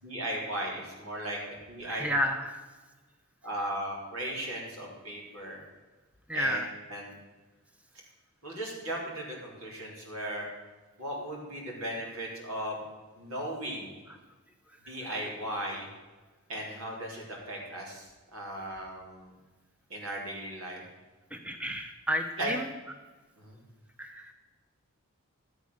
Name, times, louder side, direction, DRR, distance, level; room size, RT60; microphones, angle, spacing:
voice 1, 0.0-2.1 3.4-5.6 6.3-6.6 6.9-7.1 8.4-10.5 11.0-12.8 13.2-13.9 14.9-15.9 16.5-19.3 19.9-20.8 22.4-22.5 23.4-23.6, right 1 dB, 80° right, -2 dB, 3.8 m, -37 dB
voice 2, 1.8-2.6 6.3-6.7 14.8-14.9 21.3-22.7 24.0-24.3, equal, 5° right, 5 dB, 0.8 m, -31 dB
12.0 x 8.4 x 6.4 m, 1.3 s
head